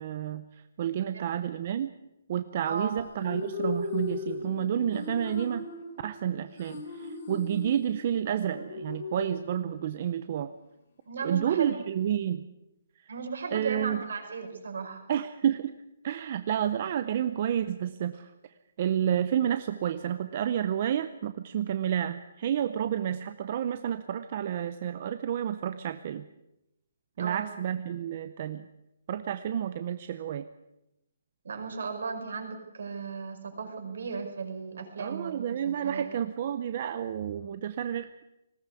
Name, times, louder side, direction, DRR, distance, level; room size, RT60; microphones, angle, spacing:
voice 1, 0.0-1.9 2.3-5.7 6.0-10.5 11.2-12.5 13.0-13.1 13.5-14.1 15.1-15.7 16.0-26.2 27.2-28.7 29.1-30.5 35.0-38.2, right 9 dB, 30° right, 10 dB, 0.6 m, -30 dB
sound 1, 3.0-10.0, left 4 dB, 40° left, 3.1 m, -38 dB
voice 2, 11.1-11.8 13.1-15.0 27.2-27.5 31.4-36.1, right 5 dB, 65° right, 4 dB, 5.3 m, -36 dB
19.5 x 17.5 x 8.3 m, 0.89 s
hypercardioid pair, 175°, 0 cm